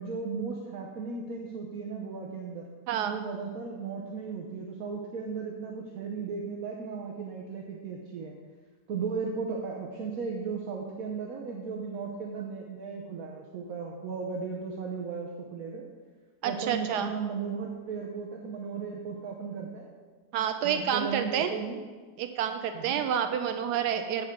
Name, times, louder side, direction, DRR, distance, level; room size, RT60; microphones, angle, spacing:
voice 1, 0.0-2.7 3.1-8.3 8.9-15.8 16.4-19.9 20.6-21.8 22.7-23.0, right 5 dB, 65° right, -1 dB, 1.4 m, -36 dB
voice 2, 16.4-17.1 20.3-21.5 22.2-24.3, right 8 dB, 85° right, 8 dB, 1.2 m, -29 dB
15.5 x 6.6 x 3.7 m, 1.4 s
omnidirectional pair, 1.7 m